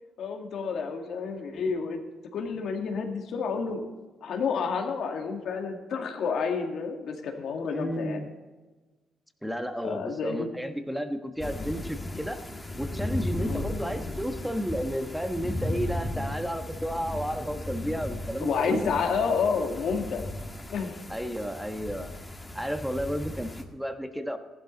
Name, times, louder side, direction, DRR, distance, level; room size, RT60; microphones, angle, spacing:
voice 1, 0.2-2.0 2.3-3.8 4.2-8.2 9.8-10.5 13.5-13.6 17.9-18.0 18.4-20.3 20.7-21.0, left 5 dB, 70° left, 3 dB, 2.1 m, -30 dB
voice 2, 7.7-8.3 9.4-12.4 12.8-18.9 21.1-22.1 22.5-24.4, equal, ahead, 7 dB, 1.3 m, -32 dB
sound 1, 11.4-23.6, left 1 dB, 15° left, 1.9 m, -36 dB
15.0 x 12.0 x 4.0 m, 1.3 s
cardioid pair, 90°, 0 cm